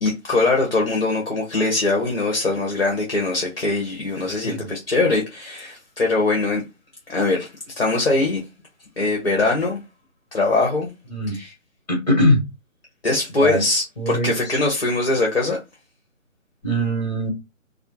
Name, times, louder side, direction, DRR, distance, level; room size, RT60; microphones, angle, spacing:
voice 1, 0.0-6.6 7.1-8.4 9.0-9.8 10.3-10.9 11.3-11.5 13.0-15.6, left 2 dB, 45° left, 0.6 m, -22 dB
voice 2, 11.9-12.4 13.4-13.6 14.0-14.3 16.6-17.3, equal, 30° left, 1.1 m, -21 dB
2.3 x 2.0 x 2.8 m
hypercardioid pair, 175°, 41 cm